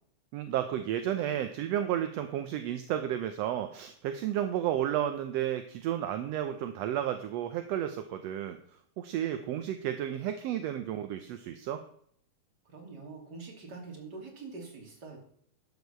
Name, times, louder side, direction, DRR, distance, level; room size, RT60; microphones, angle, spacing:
voice 1, 0.3-8.6 9.0-11.8, right 11 dB, 75° right, 8 dB, 1.7 m, -32 dB
voice 2, 12.6-15.2, right 4 dB, 35° right, 0 dB, 3.2 m, -45 dB
12.0 x 6.4 x 6.8 m, 0.64 s
omnidirectional pair, 3.3 m